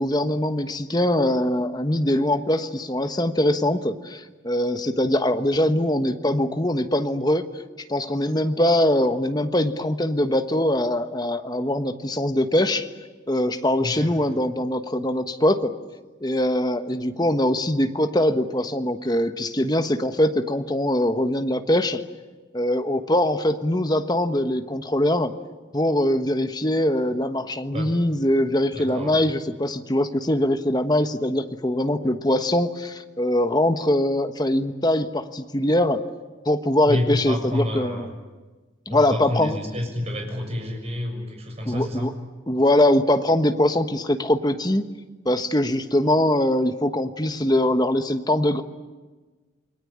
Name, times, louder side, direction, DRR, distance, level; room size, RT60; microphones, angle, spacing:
voice 1, 0.0-7.5 7.9-12.9 13.3-15.7 16.2-22.0 22.5-25.3 25.7-36.0 36.4-38.1 38.9-39.6 41.7-42.1 42.5-44.8 45.2-48.6, left 1 dB, 20° left, 8 dB, 1.2 m, -22 dB
voice 2, 13.8-14.2 27.7-27.9 28.7-29.1 36.9-38.1 38.9-42.1, left 1 dB, 30° right, 2 dB, 7.0 m, -29 dB
29.0 x 21.5 x 8.7 m, 1.3 s
head